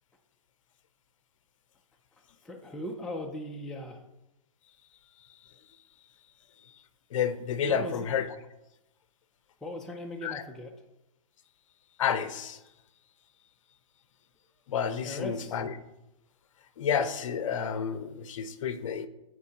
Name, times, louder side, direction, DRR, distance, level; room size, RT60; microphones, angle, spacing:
voice 1, 2.4-4.0 7.7-8.1 9.6-10.7 15.0-15.6, left 1 dB, 5° left, 1 dB, 0.3 m, -38 dB
voice 2, 7.1-8.3 10.2-10.4 12.0-12.6 14.7-15.7 16.8-19.1, left 7 dB, 60° left, 11 dB, 0.7 m, -30 dB
13.0 x 4.6 x 2.8 m, 0.93 s
hypercardioid pair, 145°, 18 cm